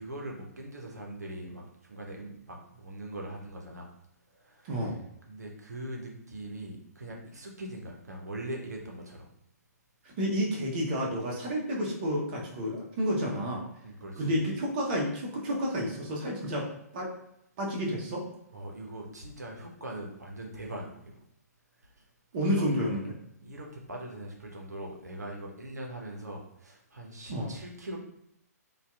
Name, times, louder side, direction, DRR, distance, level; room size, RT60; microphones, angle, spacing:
voice 1, 0.0-3.9 4.3-4.9 5.3-9.3 13.8-14.5 18.5-21.2 21.8-22.0 22.4-22.6 23.4-28.0, right 1 dB, 80° right, 1 dB, 0.7 m, -41 dB
voice 2, 4.6-5.0 10.0-13.6 14.2-17.1 17.6-18.3 22.3-23.1 27.3-27.5, equal, 35° right, -2 dB, 0.7 m, -30 dB
2.7 x 2.3 x 2.2 m, 0.76 s
figure-of-eight pair, 125°, 9 cm